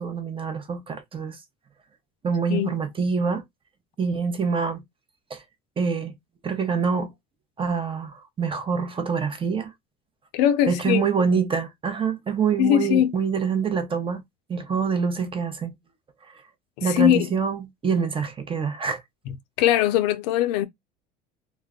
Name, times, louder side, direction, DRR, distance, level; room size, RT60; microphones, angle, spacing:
voice 1, 0.0-1.4 2.2-3.4 4.0-4.8 5.3-5.4 5.8-6.1 6.4-7.1 7.6-9.7 10.7-14.2 14.5-15.7 16.3-16.4 16.8-19.0, right 5 dB, 25° right, 0.7 m, -25 dB
voice 2, 10.3-11.1 12.6-13.1 16.8-17.3 19.3-20.7, left 12 dB, 85° left, 0.5 m, -21 dB
2.3 x 2.1 x 3.5 m
supercardioid pair, 95°, 21 cm